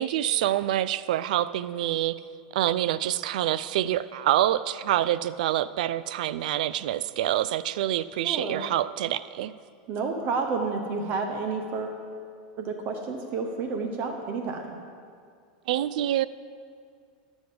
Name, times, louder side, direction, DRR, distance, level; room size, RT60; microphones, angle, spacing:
voice 1, 0.0-2.2 2.5-9.5 15.7-16.3, right 12 dB, 75° right, 16 dB, 0.3 m, -26 dB
voice 2, 8.2-8.6 9.9-12.0 12.6-14.8, right 4 dB, 45° right, 4 dB, 0.8 m, -30 dB
12.5 x 7.0 x 3.9 m, 2.2 s
supercardioid pair, 125°, 4 cm